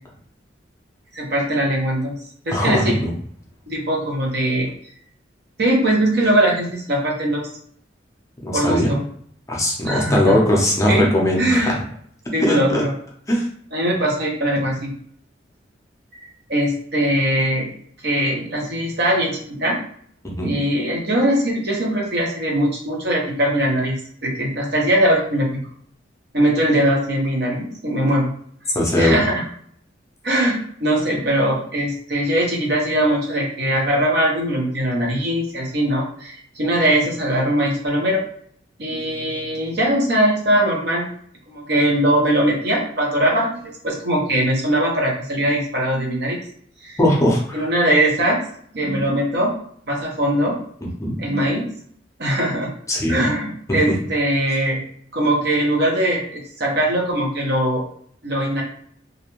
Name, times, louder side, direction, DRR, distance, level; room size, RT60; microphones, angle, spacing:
voice 1, 1.1-2.1 2.5-2.9 3.7-4.7 5.6-7.5 8.5-9.0 9.8-10.3 10.9-11.1 11.4-11.7 12.3-12.9 13.7-14.9 16.5-17.7 18.0-19.8 20.4-24.0 24.2-25.5 26.3-28.3 29.0-29.4 30.2-38.2 38.8-41.1 41.5-46.4 46.8-47.0 47.5-48.4 48.7-49.5 49.9-50.5 51.2-51.6 52.2-52.7 53.1-54.8 55.1-57.8 58.2-58.6, right 1 dB, 60° right, -1 dB, 0.7 m, -20 dB
voice 2, 2.5-3.1 8.4-8.9 9.5-11.8 12.4-12.8 13.3-13.5 20.2-20.5 28.7-29.3 47.0-47.6 50.8-51.2 52.9-53.2, left 1 dB, 15° left, -2 dB, 0.5 m, -19 dB
2.4 x 2.2 x 2.9 m, 0.62 s
head